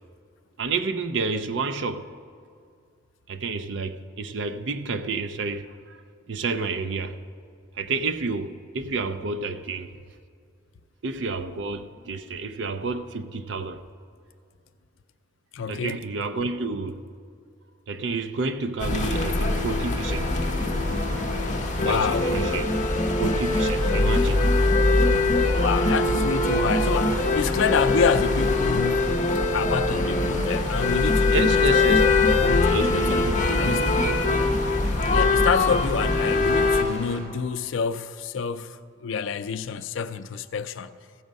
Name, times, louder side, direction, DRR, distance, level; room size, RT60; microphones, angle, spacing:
voice 1, 0.6-2.1 3.3-6.0 6.3-7.2 7.8-9.9 11.0-13.8 15.7-17.0 17.9-20.3 21.8-22.7 23.2-24.5 31.3-32.0 32.7-33.9, right 3 dB, 65° right, 0.5 m, -30 dB
voice 2, 15.5-16.0 21.8-22.3 24.3-24.5 25.6-29.3 29.5-31.8 32.4-33.3 33.6-34.2 35.1-40.9, left 6 dB, 75° left, 0.4 m, -28 dB
sound 1, 18.8-36.8, left 2 dB, 40° left, 0.7 m, -22 dB
sound 2, 18.9-37.2, left 1 dB, 20° right, 2.8 m, -39 dB
15.0 x 6.3 x 5.2 m
head